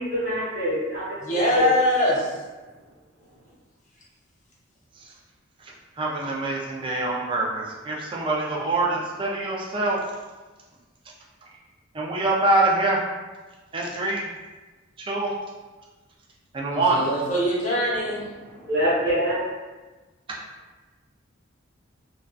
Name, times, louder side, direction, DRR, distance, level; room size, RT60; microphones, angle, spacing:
voice 1, 0.0-1.7 18.4-19.4, equal, 55° right, -8 dB, 0.8 m, -25 dB
voice 2, 1.2-2.3 16.7-18.2, left 1 dB, 40° left, -5 dB, 0.6 m, -22 dB
voice 3, 5.6-10.0 11.9-13.0 13.7-14.3 15.0-15.3 16.5-17.0 20.3-20.4, right 2 dB, 25° right, -3 dB, 0.3 m, -25 dB
2.3 x 2.3 x 2.4 m, 1.2 s
head